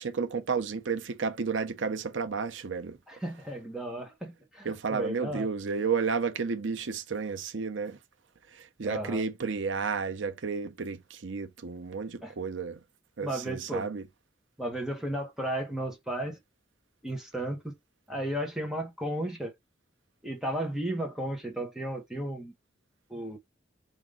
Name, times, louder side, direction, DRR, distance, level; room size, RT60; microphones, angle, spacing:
voice 1, 0.0-3.0 4.6-8.0 8.5-12.8 13.2-14.1, right 5 dB, 85° right, 0.7 m, -32 dB
voice 2, 3.1-5.5 8.8-9.2 12.2-12.3 13.2-13.9 14.6-16.4 17.0-17.7 18.1-19.5 20.2-22.5 23.1-23.4, right 1 dB, 5° right, 1.2 m, -34 dB
5.0 x 2.6 x 3.7 m
head